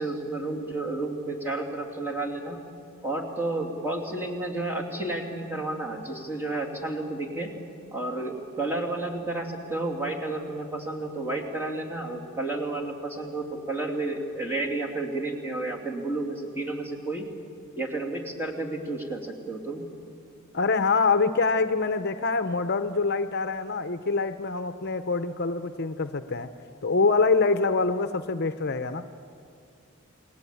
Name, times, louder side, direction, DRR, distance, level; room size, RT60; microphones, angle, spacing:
voice 1, 0.0-2.6 3.0-7.5 7.9-17.3 17.8-19.8, right 2 dB, 10° right, -1 dB, 2.9 m, -31 dB
voice 2, 20.5-26.5 26.8-29.1, left 4 dB, 50° left, 10 dB, 0.7 m, -25 dB
28.5 x 19.5 x 8.5 m, 2.3 s
head